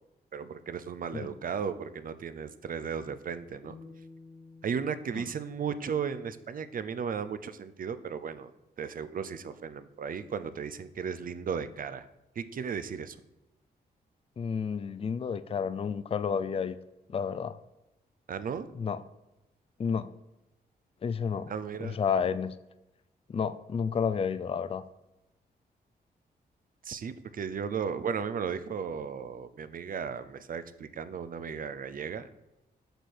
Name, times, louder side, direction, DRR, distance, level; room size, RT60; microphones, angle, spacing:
voice 1, 0.3-3.7 4.6-8.5 8.8-12.1 12.4-13.2 18.3-18.7 21.5-22.0 26.8-32.3, right 6 dB, 55° right, 12 dB, 0.7 m, -35 dB
sound 1, 3.6-6.8, left 3 dB, 80° left, 2.2 m, -54 dB
voice 2, 14.4-16.8 17.1-17.6 18.8-19.0 19.8-20.1 21.0-21.5 21.8-22.5 23.3-24.8, left 6 dB, 35° left, 14 dB, 0.4 m, -30 dB
7.9 x 4.4 x 6.6 m, 0.96 s
cardioid pair, 95°, 17 cm